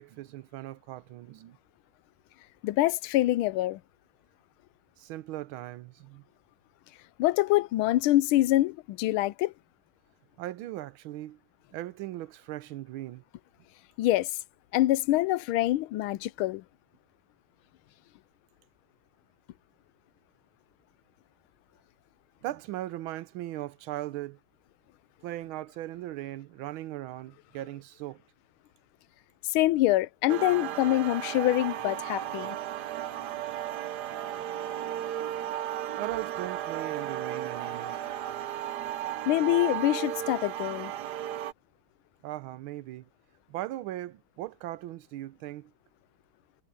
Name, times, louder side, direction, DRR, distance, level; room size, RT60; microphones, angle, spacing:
voice 1, 0.0-1.6 5.0-6.2 10.4-11.4 11.7-13.2 22.4-24.4 25.2-28.2 34.2-34.5 35.9-38.0 42.2-43.1 43.5-45.7, right 15 dB, 80° right, 1.5 m, -38 dB
voice 2, 2.6-3.8 7.2-9.5 14.0-14.3 14.7-16.6 29.4-32.6 39.3-40.9, left 15 dB, 90° left, 1.4 m, -25 dB
sound 1, 30.3-41.5, right 11 dB, 60° right, 1.2 m, -35 dB
omnidirectional pair, 2.2 m